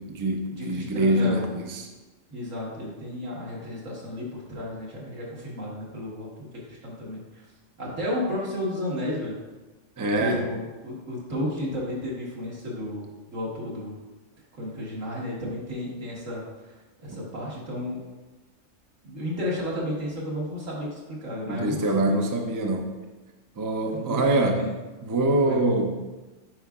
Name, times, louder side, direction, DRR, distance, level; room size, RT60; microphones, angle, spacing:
voice 1, 0.0-1.9 10.0-10.5 17.1-17.2 21.5-22.9 23.6-24.7 25.0-26.0, right 2 dB, 30° right, 2 dB, 0.3 m, -24 dB
voice 2, 0.6-1.5 2.3-6.3 6.7-7.2 7.8-9.4 10.0-14.0 14.6-16.5 17.0-18.0 19.0-22.2 23.9-24.7 25.4-25.6, left 1 dB, 75° right, -5 dB, 2.0 m, -32 dB
8.8 x 4.8 x 2.4 m, 1.2 s
omnidirectional pair, 1.3 m